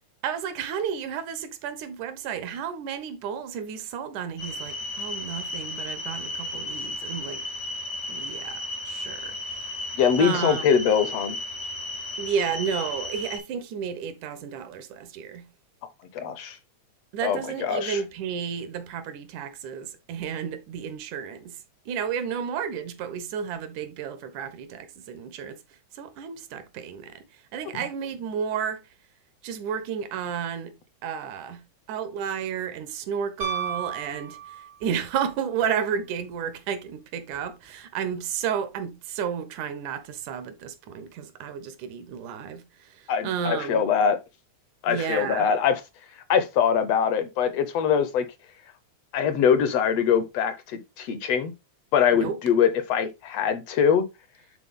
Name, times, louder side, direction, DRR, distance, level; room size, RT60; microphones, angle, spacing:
voice 1, 0.2-7.5 8.1-9.6 10.2-10.7 12.2-15.5 17.1-25.6 25.9-27.3 27.5-28.8 29.4-30.7 31.0-31.6 31.9-43.8 44.9-45.5 52.1-52.4, right 7 dB, 85° right, 2.4 m, -32 dB
sound 1, 4.4-13.4, left 1 dB, 85° left, 3.6 m, -34 dB
voice 2, 10.0-11.4 16.2-16.6 17.2-18.0 27.7-27.8 43.1-44.2 44.8-45.8 46.3-48.3 49.1-51.5 51.9-54.1, left 7 dB, 70° left, 1.7 m, -23 dB
Piano, 33.4-35.0 37.3-37.4, right 7 dB, 65° right, 0.7 m, -33 dB
10.0 x 4.0 x 3.6 m
omnidirectional pair, 3.4 m